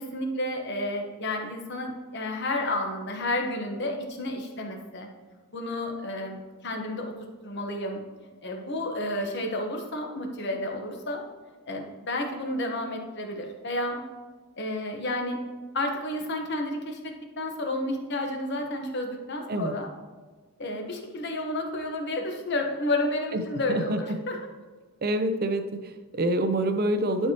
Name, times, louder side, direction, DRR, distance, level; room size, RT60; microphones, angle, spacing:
voice 1, 0.0-5.1 5.5-7.1 7.4-8.0 8.4-11.2 11.7-14.0 14.6-15.4 15.7-19.9 20.6-24.4, left 1 dB, 50° left, 2 dB, 1.1 m, -31 dB
voice 2, 23.7-24.2 25.0-27.3, right 1 dB, 45° right, 9 dB, 0.5 m, -27 dB
11.5 x 4.6 x 2.9 m, 1.3 s
head